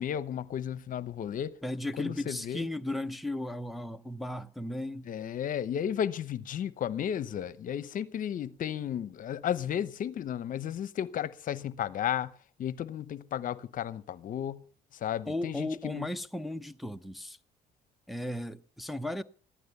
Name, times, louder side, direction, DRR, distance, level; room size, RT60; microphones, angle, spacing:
voice 1, 0.0-1.6 2.0-2.7 5.0-12.3 12.6-14.7 14.9-16.1, left 9 dB, 55° left, 0.9 m, -33 dB
voice 2, 1.6-5.1 15.3-17.4 18.1-19.2, left 1 dB, ahead, 0.7 m, -35 dB
15.0 x 12.0 x 6.9 m
cardioid pair, 110°, 17 cm